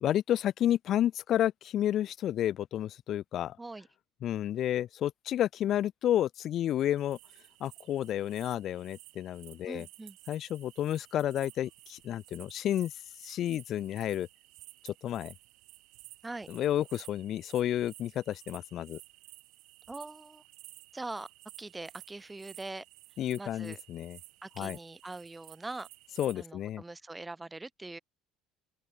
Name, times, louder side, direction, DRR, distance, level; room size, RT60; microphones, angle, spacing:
voice 1, 0.0-3.6 4.2-7.2 7.6-9.9 10.3-12.9 13.2-14.3 14.8-15.3 16.5-19.0 23.2-24.2 24.6-24.8 26.2-26.8, left 11 dB, 55° left, 0.5 m, -31 dB
sound 1, 7.0-26.5, right 21 dB, 75° right, 1.2 m, -54 dB
voice 2, 9.7-10.2 16.2-16.5 19.9-20.4 20.9-21.3 21.6-22.8 23.4-23.8 24.4-25.9 26.4-28.0, right 2 dB, 10° right, 0.8 m, -42 dB
open air
cardioid pair, 110°, 0 cm